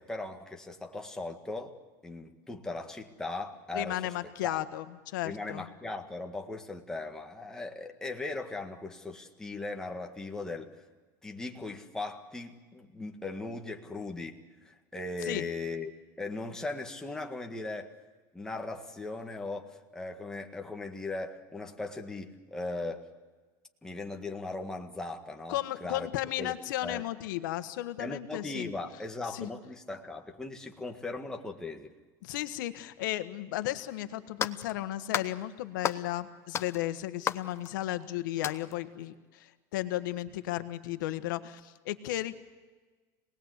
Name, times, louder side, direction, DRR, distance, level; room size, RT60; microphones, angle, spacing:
voice 1, 0.0-1.7 2.0-4.1 4.4-4.6 5.2-10.7 11.2-15.9 16.2-17.9 18.3-23.1 23.8-26.1 26.4-26.5 26.8-27.0 28.0-31.9, left 3 dB, 5° left, 2 dB, 1.9 m, -38 dB
voice 2, 3.7-5.7 15.2-15.5 25.5-28.7 29.2-29.5 32.2-42.3, left 15 dB, 90° left, 11 dB, 1.4 m, -34 dB
sound 1, 33.8-33.9 34.4-34.8 35.1-35.4 35.8-36.2 36.5-38.0 38.4-38.8, left 8 dB, 25° left, 0.8 m, -34 dB
27.0 x 19.5 x 8.2 m, 1.3 s
supercardioid pair, 145°, 10 cm